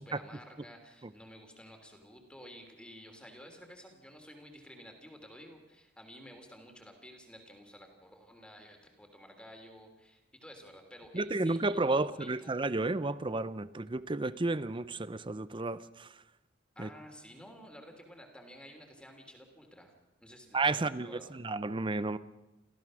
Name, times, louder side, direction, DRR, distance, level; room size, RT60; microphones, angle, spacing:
voice 1, 0.0-12.5 16.7-19.9 20.2-21.4, equal, 5° left, 4 dB, 3.1 m, -52 dB
voice 2, 11.1-16.1 16.8-16.9 20.5-22.2, right 2 dB, 25° right, 15 dB, 0.7 m, -32 dB
28.5 x 14.5 x 6.3 m, 0.99 s
head